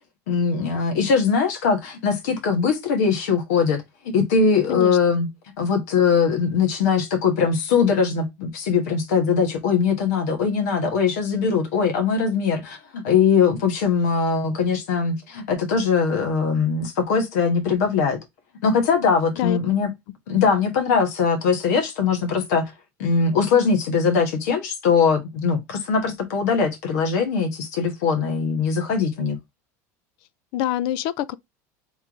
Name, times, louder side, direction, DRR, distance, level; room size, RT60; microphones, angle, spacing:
voice 1, 0.3-3.8 4.1-5.3 5.6-18.2 18.6-19.9 20.3-22.7 23.0-29.4, left 5 dB, 80° left, 1.4 m, -21 dB
voice 2, 30.5-31.4, left 13 dB, 65° left, 0.5 m, -25 dB
3.5 x 3.2 x 3.6 m
supercardioid pair, 95°, 9 cm